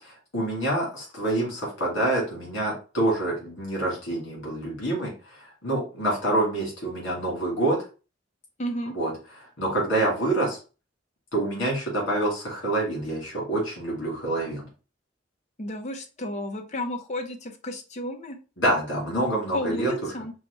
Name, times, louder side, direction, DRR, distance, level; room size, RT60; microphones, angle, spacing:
voice 1, 0.0-7.8 8.9-9.1 9.4-10.6 11.3-14.7 18.6-19.9, right 1 dB, 70° left, -3 dB, 2.1 m, -27 dB
voice 2, 8.6-8.9 15.6-18.4 19.5-20.3, left 1 dB, 40° left, 4 dB, 0.7 m, -32 dB
4.6 x 2.2 x 4.4 m, 0.34 s
head